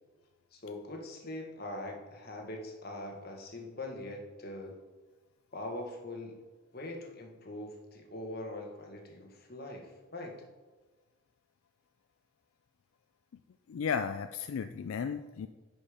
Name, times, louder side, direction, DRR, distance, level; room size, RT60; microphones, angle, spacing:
voice 1, 0.5-4.7 5.5-6.4 6.7-10.4, left 1 dB, 45° left, 2 dB, 1.4 m, -42 dB
voice 2, 13.7-15.5, left 6 dB, 75° left, 9 dB, 0.3 m, -34 dB
10.0 x 5.3 x 5.0 m, 1.3 s
head